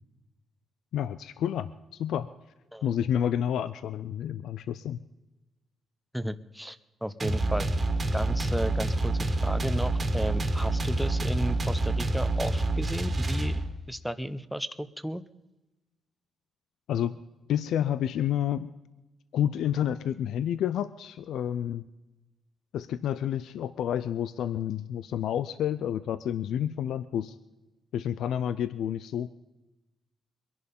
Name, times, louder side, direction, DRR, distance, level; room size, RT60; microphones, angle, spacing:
voice 1, 0.9-2.3 2.8-5.0 16.9-17.1 17.5-18.7 19.3-21.9 22.7-27.4 27.9-29.3, left 10 dB, 85° left, 14 dB, 0.5 m, -29 dB
voice 2, 6.1-7.7 8.1-13.6 13.9-15.2, equal, ahead, 12 dB, 0.7 m, -34 dB
sound 1, 7.2-13.9, right 2 dB, 30° right, 1.8 m, -27 dB
23.0 x 11.0 x 5.4 m, 1.0 s
cardioid pair, 115°, 0 cm